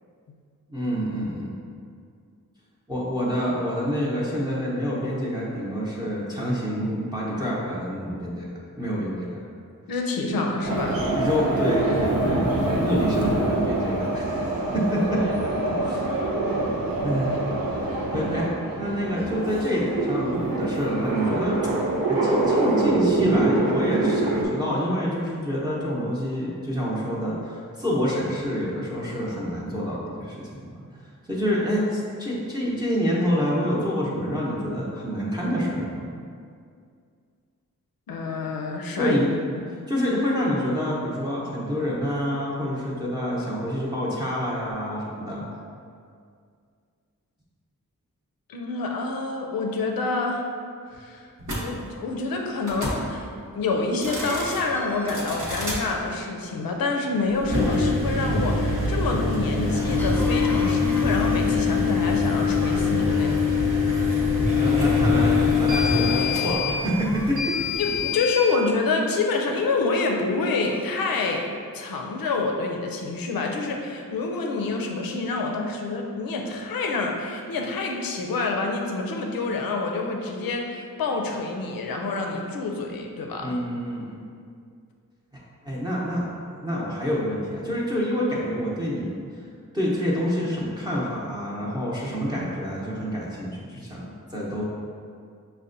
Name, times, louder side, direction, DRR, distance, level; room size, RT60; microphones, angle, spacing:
voice 1, 0.7-1.5 2.9-8.5 8.8-9.4 10.3-10.4 11.1-16.1 17.0-17.5 18.1-18.5 18.8-21.6 22.1-30.7 31.3-36.1 39.0-39.3 39.7-45.4 51.4-51.5 64.6-67.6 83.4-84.2 85.6-86.2 86.6-89.1 89.7-94.6, equal, 10° right, -6 dB, 0.7 m, -27 dB
voice 2, 9.9-11.0 38.1-39.2 39.5-39.7 48.5-50.4 50.9-51.3 51.6-53.3 53.5-63.6 67.8-83.6, left 3 dB, 85° left, 2 dB, 0.5 m, -27 dB
sound 1, 10.6-24.5, right 2 dB, 90° right, 0.5 m, -25 dB
sound 2, 51.4-51.6 52.6-53.0 53.9-54.6 55.1-55.8 57.4-68.4, left 4 dB, 60° right, 1.0 m, -23 dB
Cough, 53.0-53.1 54.1-56.4 60.0-61.7 62.4-63.3 64.1-64.8 65.4-65.7 66.7-68.3 69.9-70.2 70.6-71.5, left 1 dB, 5° left, 0.3 m, -42 dB
5.4 x 2.2 x 2.5 m, 2.2 s
cardioid pair, 45°, 34 cm